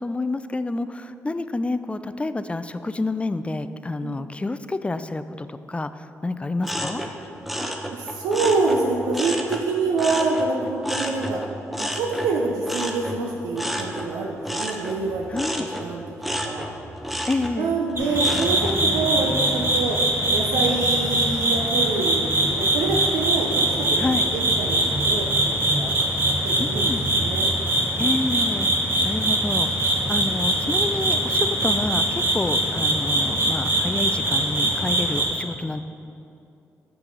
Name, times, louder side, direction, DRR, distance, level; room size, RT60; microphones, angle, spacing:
voice 1, 0.0-5.9 6.2-7.0 15.3-15.7 17.3-17.7 24.0-24.2 26.6-27.0 28.0-28.7 29.0-35.8, left 2 dB, 20° left, 12 dB, 0.3 m, -28 dB
sound 1, 6.6-9.7 10.0-18.8 19.2-19.7, equal, ahead, 0.7 m, -31 dB
voice 2, 7.9-11.4 11.8-15.3 15.6-16.0 16.4-16.7 17.6-20.0 20.3-25.9 26.3-27.5, right 3 dB, 90° right, 0 dB, 0.4 m, -26 dB
sound 2, 18.0-35.3, right 1 dB, 40° right, 1.6 m, -22 dB
6.0 x 6.0 x 3.8 m, 2.7 s
supercardioid pair, 45°, 6 cm